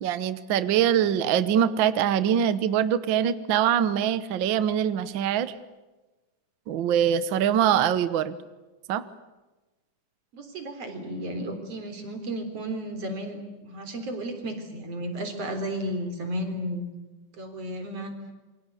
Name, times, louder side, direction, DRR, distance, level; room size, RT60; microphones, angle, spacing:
voice 1, 0.0-5.5 6.7-8.4 8.9-9.0, right 9 dB, 75° right, 14 dB, 1.1 m, -23 dB
voice 2, 10.3-16.9 17.4-18.1, right 1 dB, 50° right, 7 dB, 4.7 m, -33 dB
28.0 x 23.5 x 8.3 m, 1.2 s
omnidirectional pair, 3.6 m